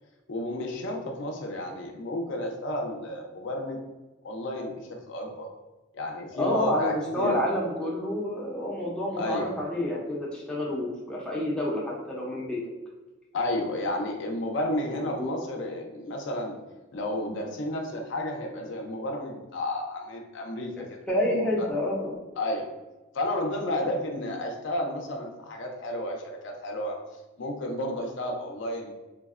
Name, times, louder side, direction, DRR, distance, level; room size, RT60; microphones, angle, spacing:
voice 1, 0.3-3.8 4.2-5.5 5.9-7.3 9.2-9.5 13.3-16.6 16.9-21.0 22.4-22.7 23.1-27.0 27.4-28.9, left 1 dB, 65° left, 2 dB, 0.4 m, -32 dB
voice 2, 6.3-12.6 14.9-15.3 20.8-22.2 23.8-23.9, left 1 dB, 5° left, -5 dB, 0.4 m, -29 dB
3.3 x 2.0 x 2.4 m, 1.1 s
head